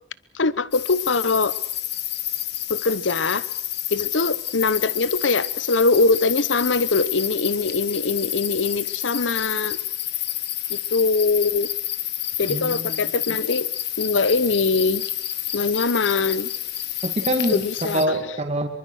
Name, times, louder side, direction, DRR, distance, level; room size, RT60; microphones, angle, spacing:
voice 1, 0.3-1.5 2.7-3.5 3.9-9.8 10.7-11.7 12.4-13.7 14.0-15.0 15.5-16.5 17.5-18.2, left 3 dB, 80° left, 17 dB, 1.0 m, -22 dB
sound 1, 0.7-18.1, left 13 dB, 60° left, 1.6 m, -29 dB
voice 2, 12.5-13.1 17.0-18.7, right 1 dB, 35° right, 4 dB, 2.5 m, -25 dB
25.0 x 24.0 x 6.4 m, 0.65 s
head